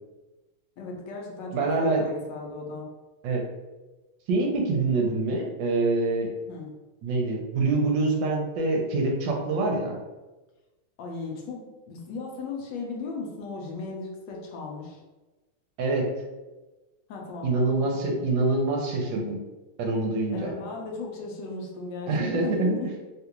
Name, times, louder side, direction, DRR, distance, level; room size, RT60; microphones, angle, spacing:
voice 1, 0.8-2.9 6.4-6.7 11.0-15.0 17.1-17.5 18.1-18.2 20.3-22.9, left 3 dB, 70° left, -1 dB, 1.2 m, -36 dB
voice 2, 1.5-2.0 3.2-3.4 4.3-6.3 7.0-10.0 15.8-16.1 17.4-19.4 19.8-20.5 22.1-22.8, right 3 dB, 70° right, 0 dB, 1.3 m, -25 dB
3.5 x 2.4 x 2.9 m, 1.1 s
omnidirectional pair, 2.3 m